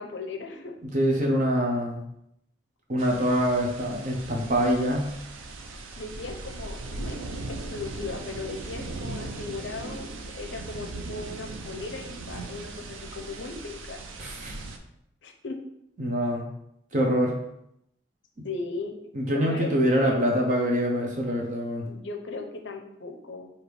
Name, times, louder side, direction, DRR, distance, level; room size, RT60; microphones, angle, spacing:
voice 1, 0.0-0.8 6.0-7.2 7.5-14.0 15.2-15.6 18.4-18.9 19.3-20.3 21.9-23.5, left 3 dB, 65° left, 3 dB, 0.6 m, -37 dB
voice 2, 0.9-2.0 2.9-5.1 14.2-14.6 16.0-16.5 16.9-17.4 18.4-18.5 19.1-21.8, equal, 40° right, 0 dB, 0.8 m, -25 dB
sound 1, 3.0-14.8, right 2 dB, 90° right, 0.5 m, -38 dB
4.7 x 2.9 x 3.3 m, 0.77 s
head